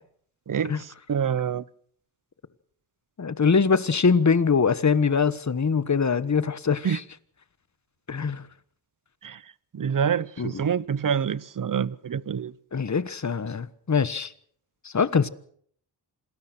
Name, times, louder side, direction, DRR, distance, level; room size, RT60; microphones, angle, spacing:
voice 1, 0.5-1.6 6.8-7.0 9.2-9.4 9.7-12.5, right 7 dB, 45° right, 0.9 m, -27 dB
voice 2, 3.2-7.0 8.1-8.5 10.4-10.5 12.7-14.3 14.8-15.3, left 5 dB, 40° left, 1.3 m, -23 dB
27.0 x 19.5 x 6.1 m
cardioid pair, 70°, 44 cm